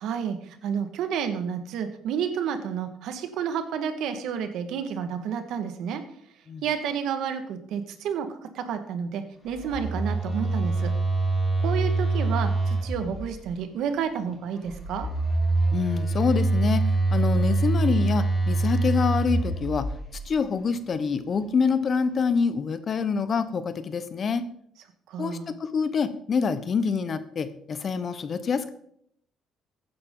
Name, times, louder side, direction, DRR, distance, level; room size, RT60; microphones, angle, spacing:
voice 1, 0.0-6.0 6.6-10.9 11.6-15.1 25.1-25.6, right 7 dB, 75° right, 8 dB, 1.7 m, -30 dB
Telephone, 9.5-13.5 14.7-20.4, right 2 dB, 15° left, 4.2 m, -25 dB
voice 2, 15.7-16.8 17.1-19.9 20.2-24.4 25.2-28.7, left 5 dB, 40° left, 12 dB, 1.1 m, -26 dB
15.0 x 9.6 x 3.9 m, 0.68 s
cardioid pair, 100°, 0 cm